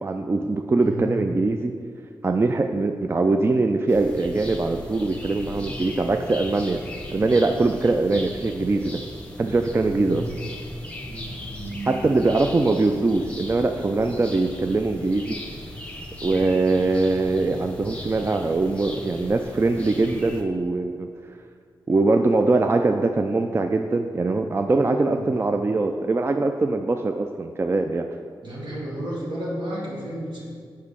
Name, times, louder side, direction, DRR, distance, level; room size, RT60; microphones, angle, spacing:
voice 1, 0.0-1.7 2.2-6.8 7.1-9.0 9.4-10.2 11.9-15.4 16.2-21.1 21.9-28.1, right 3 dB, 30° right, 6 dB, 0.3 m, -22 dB
voice 2, 0.8-1.2 9.9-10.4 11.0-11.9 25.0-25.4 28.4-30.4, right 1 dB, 70° right, -4 dB, 1.7 m, -33 dB
sound 1, 3.9-20.4, left 1 dB, 15° left, 0.9 m, -38 dB
4.9 x 4.6 x 5.6 m, 2.1 s
cardioid pair, 50°, 8 cm